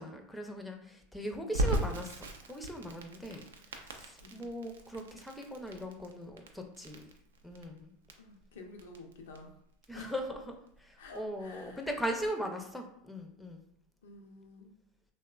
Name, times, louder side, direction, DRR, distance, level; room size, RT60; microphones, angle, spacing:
voice 1, 0.0-3.5 3.8-7.1 7.4-7.9 9.9-13.6, equal, 5° left, 3 dB, 0.4 m, -39 dB
Crackle, 1.5-12.3, right 1 dB, 85° right, 0.3 m, -39 dB
voice 2, 8.2-9.5 9.9-10.2 11.0-11.9 14.0-14.7, left 2 dB, 80° left, 2 dB, 0.4 m, -50 dB
3.0 x 2.1 x 2.3 m, 0.70 s
hypercardioid pair, 95°, 0 cm